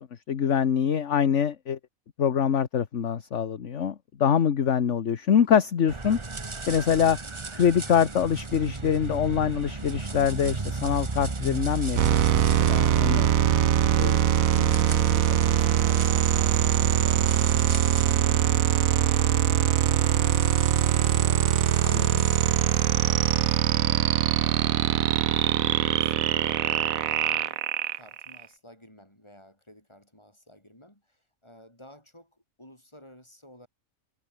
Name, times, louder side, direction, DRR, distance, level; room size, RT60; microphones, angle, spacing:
voice 1, 0.3-1.8 2.2-6.2 6.7-7.2 7.5-12.2 12.6-13.3 14.0-14.2 14.5-14.7 15.1-15.2 21.8-22.2, left 8 dB, 60° left, 1.5 m, -24 dB
sound 1, 5.9-23.5, right 3 dB, 20° right, 1.2 m, -36 dB
sound 2, 12.0-28.4, right 10 dB, 75° right, 1.3 m, -22 dB
voice 2, 15.3-15.7 16.0-17.3 17.7-21.5 22.2-25.0 25.4-27.6 27.9-33.7, left 1 dB, 20° left, 7.4 m, -51 dB
omnidirectional pair, 1.5 m